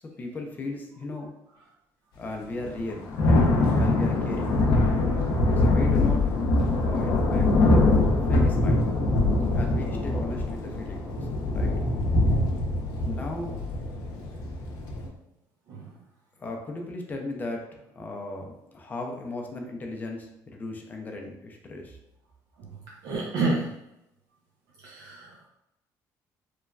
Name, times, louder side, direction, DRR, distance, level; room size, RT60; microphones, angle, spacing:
voice 1, 0.2-1.3 2.2-3.1 3.8-4.6 5.6-6.3 6.8-7.5 8.2-8.9 9.5-11.7 13.0-13.6 16.4-22.0, left 2 dB, 25° left, 2 dB, 0.4 m, -36 dB
Thunder / Rain, 2.7-15.1, left 2 dB, 70° left, 0.5 m, -23 dB
voice 2, 23.0-23.7 24.8-25.5, right 3 dB, 70° right, -3 dB, 0.4 m, -29 dB
3.0 x 2.2 x 2.3 m, 0.87 s
cardioid pair, 145°, 7 cm